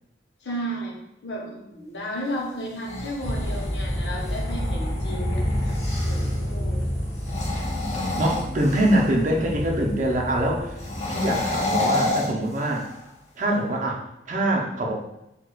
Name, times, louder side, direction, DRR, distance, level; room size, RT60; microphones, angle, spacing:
voice 1, 0.4-5.8 6.0-6.8, equal, 80° left, -1 dB, 0.8 m, -33 dB
sound 1, 2.6-6.4 7.1-9.2 10.8-13.1, left 2 dB, 40° left, 0.6 m, -30 dB
sound 2, 3.2-11.7, equal, 10° left, 1.1 m, -29 dB
voice 2, 8.2-10.8 11.1-12.9 13.4-14.0 14.3-15.0, right 1 dB, 45° right, 0 dB, 0.5 m, -24 dB
4.4 x 2.3 x 2.3 m, 0.87 s
head